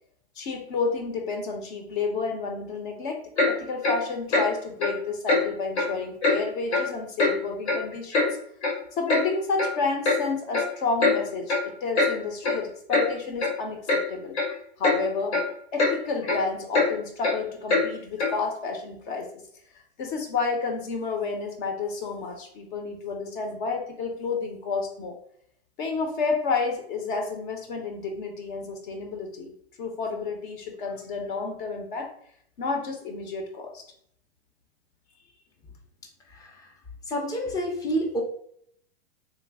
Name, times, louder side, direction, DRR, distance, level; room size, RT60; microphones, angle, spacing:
voice 1, 0.4-8.3 8.9-14.4 14.8-15.4 15.7-19.4 20.0-25.2 25.8-29.5 29.8-32.1 32.6-33.8, left 4 dB, 50° left, 4 dB, 0.7 m, -30 dB
Clock, 3.4-3.5 3.8-4.0 4.3-4.5 4.8-4.9 5.3-5.4 5.7-5.9 6.2-6.4 6.7-6.9 7.2-7.3 7.7-8.3 8.6-8.7 9.1-9.2 9.6-9.7 10.0-10.2 10.5-10.7 11.0-11.2 11.5-11.6 11.9-12.1 12.4-12.6 12.9-13.1 13.4-13.5 13.9-14.0 14.3-14.5 14.8-15.0 15.3-15.5 15.8-15.9 16.2-16.4 16.7-16.9 17.2-17.3 17.7-17.8 18.2-18.3, left 3 dB, 90° left, 1.3 m, -22 dB
voice 2, 36.3-36.7 37.1-38.2, equal, 10° left, 1 dB, 0.5 m, -29 dB
3.3 x 2.0 x 3.4 m, 0.66 s
hypercardioid pair, 135°, 32 cm